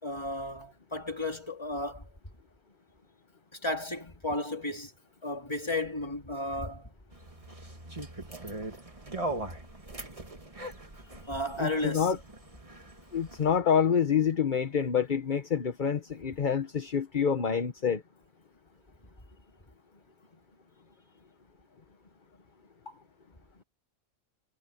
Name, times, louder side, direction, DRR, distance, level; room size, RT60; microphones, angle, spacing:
voice 1, 0.0-2.1 3.5-4.9 5.2-6.9 11.3-12.1 22.9-23.0, left 1 dB, 20° left, 2.9 m, -34 dB
sound 1, 7.1-13.6, right 2 dB, 25° right, 2.0 m, -41 dB
voice 2, 11.6-12.2 13.1-18.0, left 7 dB, 40° left, 1.2 m, -27 dB
omnidirectional pair, 1.3 m